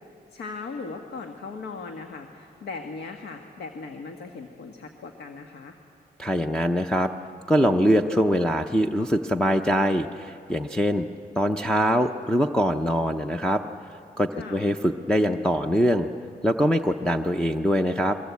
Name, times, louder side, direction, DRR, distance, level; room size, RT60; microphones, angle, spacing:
voice 1, 0.3-5.8 14.3-14.7, left 4 dB, 90° left, 5 dB, 1.7 m, -38 dB
voice 2, 6.2-7.1 7.5-11.1 11.4-13.6 14.2-16.1 16.4-18.1, equal, 5° left, 6 dB, 0.6 m, -23 dB
28.5 x 22.5 x 8.4 m, 2.6 s
wide cardioid pair, 165°, 17 cm